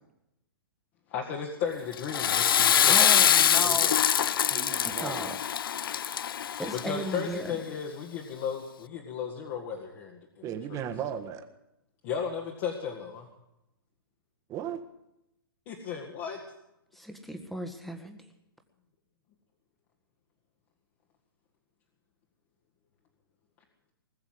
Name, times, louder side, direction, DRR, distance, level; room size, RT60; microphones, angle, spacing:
voice 1, 1.1-3.1 3.6-4.0 6.7-10.8 12.0-13.3 15.7-16.4, left 7 dB, 40° left, 0 dB, 2.1 m, -35 dB
Water / Toilet flush, 1.9-7.2, left 9 dB, 70° left, 0.5 m, -24 dB
voice 2, 2.9-4.0 4.8-5.4 6.6-7.6 16.9-18.2, equal, ahead, 6 dB, 1.6 m, -35 dB
voice 3, 4.5-5.4 10.4-11.4 14.5-14.8, right 9 dB, 25° right, 6 dB, 1.6 m, -36 dB
20.0 x 7.1 x 9.6 m, 0.86 s
hypercardioid pair, 130°, 12 cm